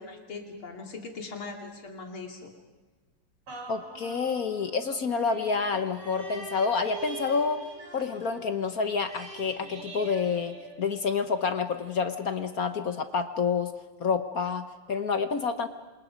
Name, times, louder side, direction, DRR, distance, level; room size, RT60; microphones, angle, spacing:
voice 1, 0.0-2.5, left 3 dB, 70° left, 2 dB, 3.7 m, -40 dB
sound 1, 3.5-11.3 11.8-11.9, right 3 dB, 90° right, 4.1 m, -44 dB
voice 2, 3.7-7.6 7.9-13.7 14.0-15.7, left 5 dB, 50° left, 9 dB, 1.2 m, -28 dB
28.0 x 26.5 x 5.2 m, 1.3 s
omnidirectional pair, 2.4 m